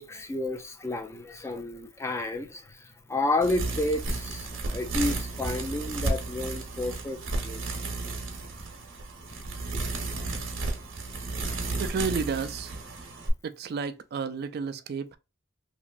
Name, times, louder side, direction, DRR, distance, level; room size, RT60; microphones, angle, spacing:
voice 1, 0.0-7.6, left 2 dB, 15° left, 0.4 m, -31 dB
sound 1, 3.4-13.3, right 2 dB, 80° right, 0.8 m, -33 dB
voice 2, 11.8-12.8 13.4-15.2, right 5 dB, 55° right, 0.3 m, -31 dB
3.0 x 2.5 x 2.4 m
head